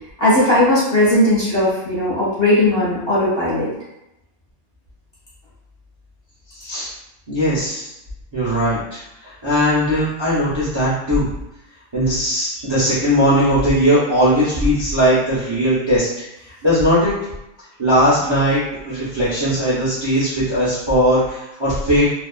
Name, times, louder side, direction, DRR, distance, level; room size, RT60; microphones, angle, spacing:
voice 1, 0.2-3.7, left 1 dB, 20° left, -10 dB, 0.9 m, -17 dB
voice 2, 6.5-6.9 7.3-7.9 8.3-11.3 11.9-16.2 16.6-17.1 17.8-22.0, equal, 50° right, -10 dB, 0.3 m, -18 dB
2.5 x 2.3 x 2.3 m, 0.88 s
omnidirectional pair, 1.6 m